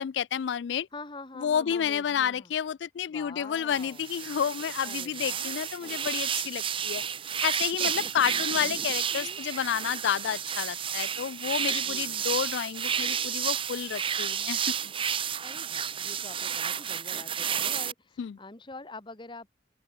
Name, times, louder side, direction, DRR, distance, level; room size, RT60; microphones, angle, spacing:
voice 1, 0.0-0.9 1.4-7.0 7.4-14.7 18.2-18.4, left 8 dB, 80° left, 0.4 m, -30 dB
voice 2, 0.9-2.5 3.1-4.0 4.8-5.6 7.8-8.3 11.6-12.3 15.4-19.5, left 2 dB, 25° left, 1.6 m, -45 dB
sound 1, 3.7-17.9, right 8 dB, 30° right, 0.7 m, -31 dB
open air
head